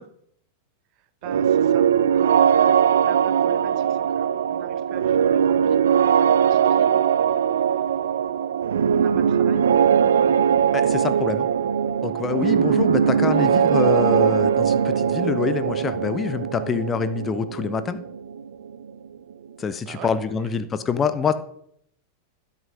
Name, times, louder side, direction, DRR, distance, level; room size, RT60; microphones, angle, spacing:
voice 1, 1.2-7.1 8.9-9.6 19.8-20.5, right 10 dB, 40° right, 12 dB, 0.9 m, -41 dB
sound 1, 1.2-18.9, right 8 dB, 65° right, 0.4 m, -20 dB
voice 2, 10.7-11.5 12.0-18.0 19.6-21.3, left 6 dB, 20° left, 12 dB, 0.8 m, -26 dB
12.5 x 6.2 x 5.5 m, 0.67 s
figure-of-eight pair, 90°, 0 cm